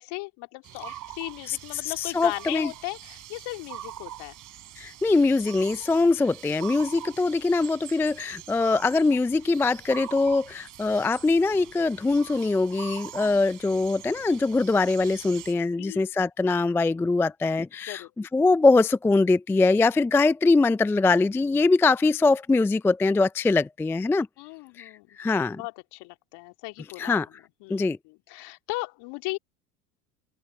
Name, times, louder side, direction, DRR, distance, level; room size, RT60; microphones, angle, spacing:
voice 1, 0.0-4.4 6.9-7.1 13.2-13.4 15.8-16.0 17.9-18.1 24.4-25.2 25.5-27.2 27.6-29.4, left 24 dB, 55° left, 2.4 m, -37 dB
sound 1, 0.6-15.5, right 12 dB, 40° right, 3.7 m, -44 dB
voice 2, 1.8-2.7 4.8-24.3 24.8-25.6 27.0-27.3 27.7-28.0, left 3 dB, 5° left, 0.4 m, -23 dB
open air
hypercardioid pair, 80°, 48 cm